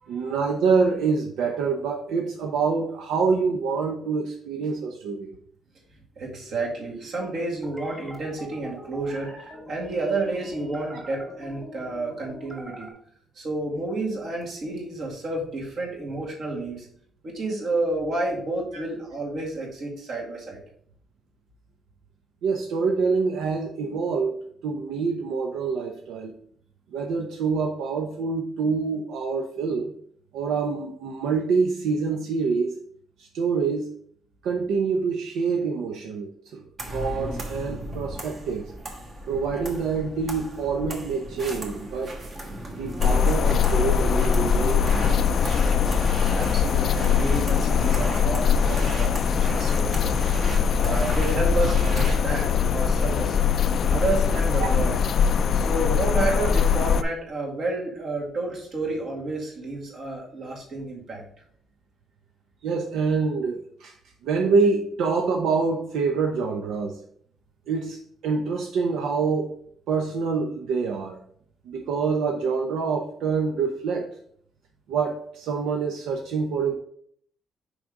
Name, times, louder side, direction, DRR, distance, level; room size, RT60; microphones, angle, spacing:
voice 1, 0.1-5.3 18.7-18.8 22.4-26.3 26.9-29.9 30.3-32.8 33.2-33.9 34.4-38.7 39.3-42.2 42.7-45.4 62.6-64.0 64.2-67.0 67.7-69.6 69.9-71.2 71.6-74.2 74.9-76.8, right 5 dB, 80° right, 2 dB, 0.7 m, -26 dB
voice 2, 6.2-9.3 9.7-12.9 13.3-16.9 17.2-20.6 46.3-50.3 50.8-53.4 53.9-55.0 55.5-61.2, right 2 dB, 50° right, -2 dB, 2.1 m, -30 dB
sound 1, 7.6-12.9, equal, 15° right, 2.0 m, -43 dB
sound 2, 36.8-52.2, right 1 dB, 30° right, 1.2 m, -36 dB
sound 3, 43.0-57.0, left 7 dB, 45° left, 0.3 m, -22 dB
6.1 x 5.0 x 3.7 m, 0.62 s
cardioid pair, 165°, 0 cm